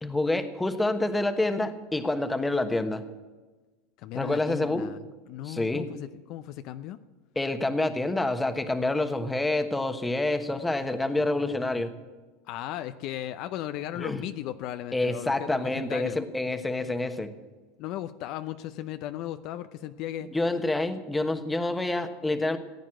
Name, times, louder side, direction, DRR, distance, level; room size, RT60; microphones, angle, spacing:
voice 1, 0.0-3.1 4.1-4.9 5.4-5.9 7.3-11.9 14.0-14.2 14.9-17.3 20.2-22.6, left 2 dB, 10° left, 8 dB, 1.2 m, -27 dB
voice 2, 4.0-7.0 12.5-16.2 17.8-20.3, left 12 dB, 55° left, 10 dB, 0.6 m, -36 dB
16.0 x 9.2 x 7.6 m, 1.3 s
supercardioid pair, 120°, 0 cm